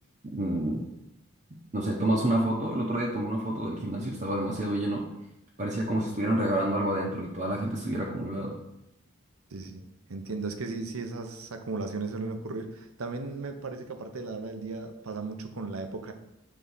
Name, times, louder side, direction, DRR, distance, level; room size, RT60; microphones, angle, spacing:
voice 1, 0.3-0.8 1.7-5.0 5.6-8.5, right 1 dB, 35° right, -3 dB, 0.8 m, -28 dB
voice 2, 9.5-9.8 10.1-16.1, right 3 dB, 90° right, 7 dB, 0.8 m, -36 dB
6.2 x 3.7 x 5.5 m, 0.86 s
head